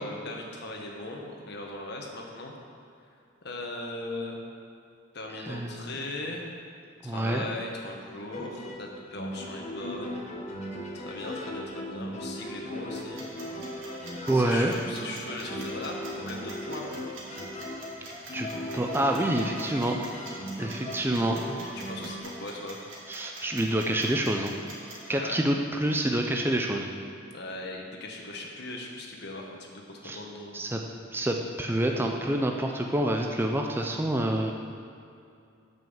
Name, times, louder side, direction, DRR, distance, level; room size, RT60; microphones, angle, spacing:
voice 1, 0.0-2.5 3.4-4.4 5.1-6.5 7.0-10.2 10.9-13.2 14.3-16.9 21.7-23.0 25.1-25.4 27.3-30.6, left 2 dB, 60° left, 0 dB, 1.4 m, -39 dB
voice 2, 5.4-5.9 7.0-7.5 14.3-14.8 18.3-18.5 18.7-20.0 20.6-21.6 23.1-24.6 25.1-26.9 30.0-30.2 30.5-30.8 31.1-34.5, right 1 dB, 10° right, 2 dB, 0.5 m, -27 dB
Violano Virtuoso - Self Playing Violin and Piano, 8.3-22.2, equal, 35° left, 1.2 m, -38 dB
sound 1, 13.0-25.1, right 2 dB, 80° right, 2.2 m, -45 dB
9.1 x 5.5 x 7.2 m, 2.5 s
head